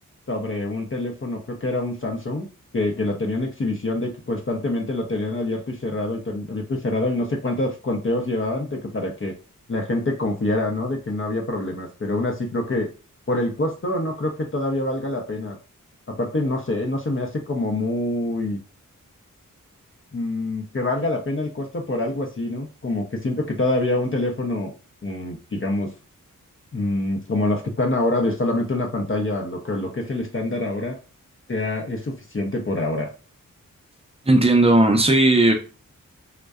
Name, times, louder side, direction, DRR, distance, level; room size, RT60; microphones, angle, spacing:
voice 1, 0.3-2.5 2.7-9.4 9.7-12.9 13.3-15.6 16.1-18.6 20.1-24.7 25.0-25.9 26.7-31.0 31.5-33.1, left 2 dB, 40° left, 0.6 m, -25 dB
voice 2, 34.3-35.5, right 2 dB, 20° right, 0.6 m, -16 dB
2.5 x 2.1 x 2.3 m
cardioid pair, 40°, 34 cm